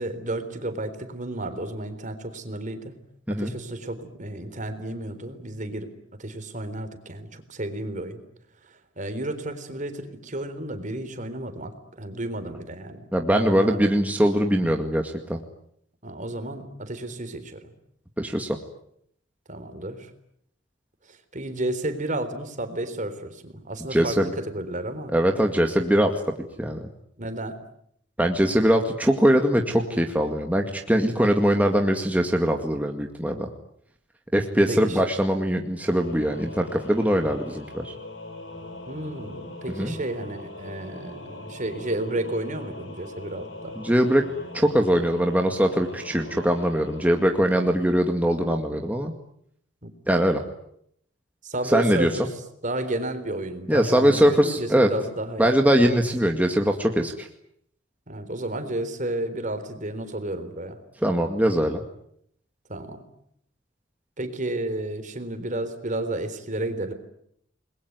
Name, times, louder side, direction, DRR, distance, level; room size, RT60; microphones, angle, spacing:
voice 1, 0.0-3.0 3.3-8.2 8.6-14.2 16.0-17.7 19.5-20.1 21.1-25.1 27.2-27.6 34.7-35.0 38.9-43.8 49.8-49.9 51.4-52.3 52.6-55.5 55.8-55.9 58.1-60.8 62.7-63.0 64.2-66.9, right 1 dB, 45° right, 10 dB, 3.8 m, -32 dB
voice 2, 13.1-15.4 18.2-18.6 23.9-24.3 25.1-26.1 26.6-26.8 28.2-33.5 34.3-37.9 39.7-39.9 43.8-44.2 44.5-49.1 50.1-50.4 51.7-52.1 53.7-54.9 55.4-57.3 61.0-61.8, equal, 10° right, 3 dB, 2.1 m, -22 dB
Singing / Musical instrument, 35.8-48.2, left 2 dB, 90° left, 6.7 m, -41 dB
29.5 x 21.5 x 9.5 m, 0.73 s
head